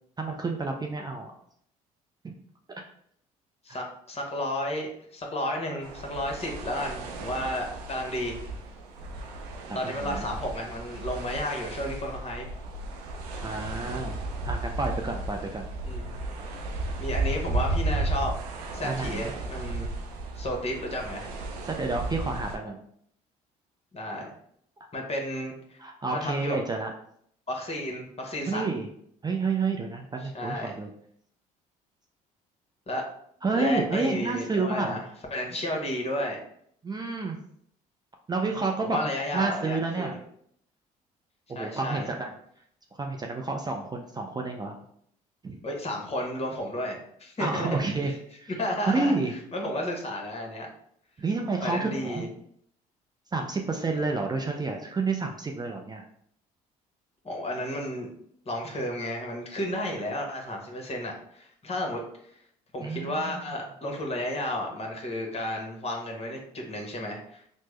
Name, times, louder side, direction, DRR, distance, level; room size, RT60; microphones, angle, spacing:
voice 1, 0.2-1.3 2.2-2.3 3.7-3.8 9.7-10.3 13.4-14.2 14.4-15.6 18.8-19.3 21.7-22.8 25.8-26.9 28.5-28.9 29.2-30.9 33.4-35.0 36.8-37.4 38.3-39.0 39.3-40.2 41.5-42.3 43.0-44.8 45.4-45.6 47.4-48.5 48.9-49.3 51.2-52.3 53.3-56.0 62.8-63.4, right 3 dB, 20° right, 2 dB, 0.5 m, -29 dB
voice 2, 3.6-8.4 9.7-12.5 15.8-16.1 17.0-18.3 18.7-19.9 20.3-21.3 23.9-24.3 24.9-25.8 26.1-26.6 27.5-28.6 30.2-30.7 32.9-33.0 33.5-35.0 35.3-36.4 38.8-40.2 41.5-42.1 45.6-48.2 48.6-49.1 49.5-50.7 51.6-52.3 57.2-58.1 58.4-62.3 62.7-67.4, left 1 dB, 35° left, 1 dB, 1.1 m, -32 dB
sound 1, 5.8-22.6, right 2 dB, 90° right, 0.5 m, -34 dB
3.3 x 2.0 x 3.2 m, 0.66 s
hypercardioid pair, 60°, 19 cm